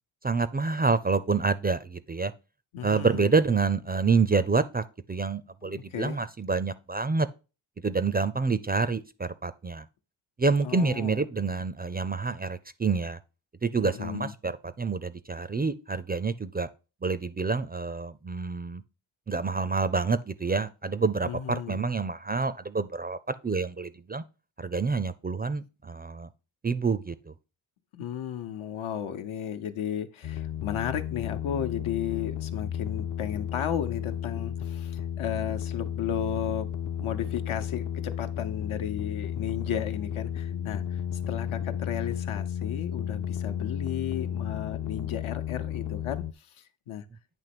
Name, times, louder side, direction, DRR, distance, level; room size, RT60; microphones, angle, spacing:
voice 1, 0.2-2.3 2.8-4.8 5.1-7.3 7.8-9.8 10.4-13.2 13.6-16.7 17.0-18.8 19.3-24.2 24.6-26.3 26.6-27.2, right 4 dB, 20° right, 0.4 m, -27 dB
voice 2, 2.7-3.4 5.6-6.2 10.6-11.2 13.8-14.3 21.2-21.9 27.9-36.7 37.0-47.0, left 9 dB, 80° left, 0.9 m, -34 dB
sound 1, 30.2-46.3, left 9 dB, 40° left, 0.4 m, -33 dB
9.0 x 3.1 x 5.9 m
cardioid pair, 90°, 48 cm